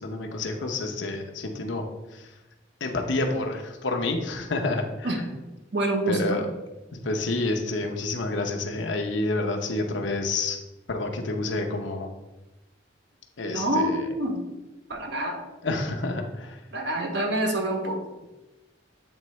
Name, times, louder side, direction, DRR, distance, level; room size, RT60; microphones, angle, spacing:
voice 1, 0.0-1.8 2.1-2.2 2.8-5.3 6.1-6.5 6.9-10.6 10.9-12.1 13.4-14.0 15.6-16.6, left 2 dB, 80° left, 3 dB, 0.7 m, -29 dB
voice 2, 5.7-6.4 13.5-14.5 14.9-15.4 16.7-18.0, right 1 dB, 65° right, 3 dB, 0.9 m, -26 dB
8.0 x 3.8 x 3.1 m, 1.1 s
head